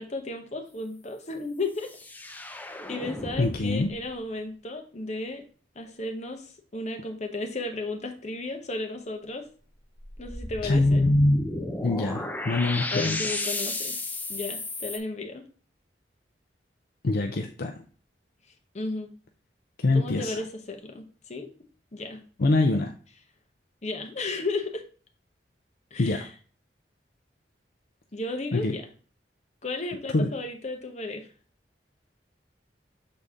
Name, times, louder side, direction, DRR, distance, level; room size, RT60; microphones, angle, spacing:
voice 1, 0.0-1.9 2.9-5.4 5.7-9.5 10.2-11.0 12.9-14.0 14.3-15.4 18.7-19.1 19.9-21.5 21.9-22.2 23.8-24.8 25.9-26.3 28.1-28.9 29.6-31.3, left 2 dB, 40° left, 4 dB, 1.0 m, -34 dB
sound 1, 1.8-4.2 10.0-15.0, left 2 dB, 10° left, 0.6 m, -34 dB
voice 2, 3.4-3.9 10.6-11.4 11.8-13.3 17.0-17.7 19.8-20.4 22.4-22.9 26.0-26.3 28.5-28.7 30.1-30.3, left 2 dB, 60° left, 4 dB, 0.5 m, -24 dB
6.5 x 4.1 x 3.6 m, 0.39 s
head